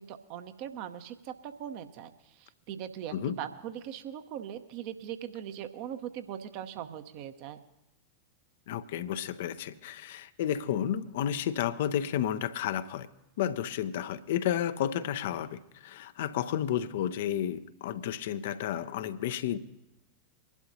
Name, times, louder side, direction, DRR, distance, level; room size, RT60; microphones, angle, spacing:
voice 1, 0.0-2.1 2.4-7.6, right 10 dB, 45° right, 9 dB, 0.9 m, -40 dB
voice 2, 8.7-13.1 13.4-19.6, left 10 dB, 55° left, 13 dB, 0.6 m, -32 dB
24.0 x 11.5 x 2.8 m, 0.90 s
figure-of-eight pair, 90°, 0 cm